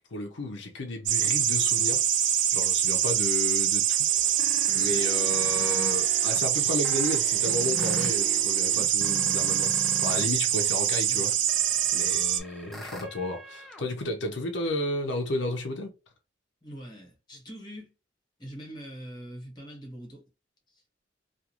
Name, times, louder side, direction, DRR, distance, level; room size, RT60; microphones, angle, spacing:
voice 1, 0.0-4.4 4.7-9.7 10.0-11.3 11.9-15.9, left 2 dB, 75° left, 0.6 m, -33 dB
sound 1, 1.1-12.4, right 11 dB, 75° right, 0.4 m, -25 dB
sound 2, 4.1-10.3 10.6-13.8, equal, ahead, 0.4 m, -41 dB
voice 2, 16.6-17.9 18.4-20.2 20.7-20.8, equal, 25° left, 1.1 m, -43 dB
2.4 x 2.4 x 2.9 m
head